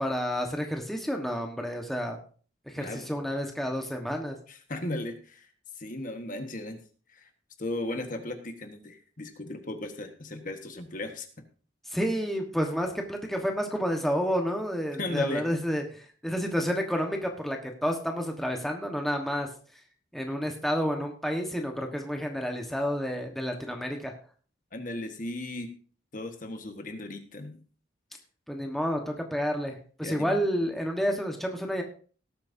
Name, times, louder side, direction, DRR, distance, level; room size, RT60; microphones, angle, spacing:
voice 1, 0.0-2.2 2.7-4.4 11.9-19.5 20.1-24.1 28.5-31.8, equal, ahead, 2 dB, 1.3 m, -30 dB
voice 2, 2.7-3.1 4.5-5.5 5.8-6.8 7.1-7.3 7.6-11.3 15.0-15.4 24.7-25.7 26.1-27.6 30.0-30.4, left 2 dB, 45° left, 6 dB, 1.4 m, -36 dB
18.0 x 8.9 x 2.7 m, 0.40 s
head